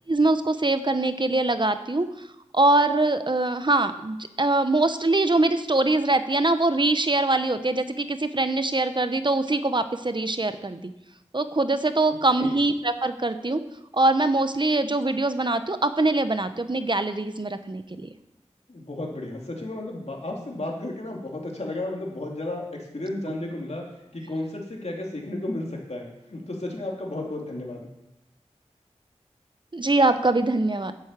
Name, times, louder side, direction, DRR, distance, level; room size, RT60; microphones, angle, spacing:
voice 1, 0.1-2.1 2.5-10.9 11.3-13.6 13.9-18.1 29.7-30.9, right 2 dB, 40° right, 10 dB, 0.9 m, -23 dB
voice 2, 12.1-12.6 18.7-23.8 24.1-27.9, left 1 dB, 65° left, -1 dB, 2.8 m, -33 dB
9.8 x 8.2 x 7.4 m, 0.88 s
wide cardioid pair, 45°, 12 cm